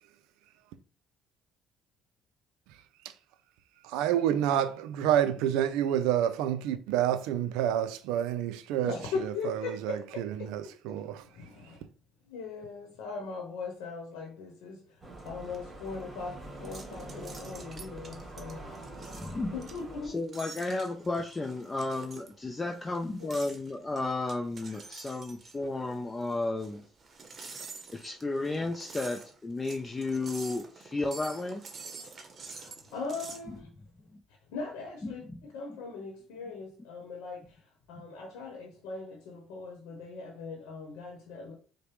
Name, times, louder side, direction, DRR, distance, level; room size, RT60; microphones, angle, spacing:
voice 1, 3.9-8.9 9.8-11.2, right 10 dB, 85° right, 0.4 m, -28 dB
voice 2, 8.8-11.9 12.2-18.7 19.5-20.2 23.2-23.3 32.4-33.7 34.5-41.5, left 4 dB, 85° left, 0.9 m, -40 dB
sound 1, 15.0-20.1, right 2 dB, 20° right, 1.9 m, -45 dB
sound 2, 15.2-33.5, right 4 dB, 40° right, 0.9 m, -48 dB
voice 3, 19.1-19.5 20.1-26.8 27.9-31.6 35.0-35.1, left 2 dB, 25° left, 0.5 m, -33 dB
4.8 x 2.1 x 3.1 m
supercardioid pair, 75°, 0 cm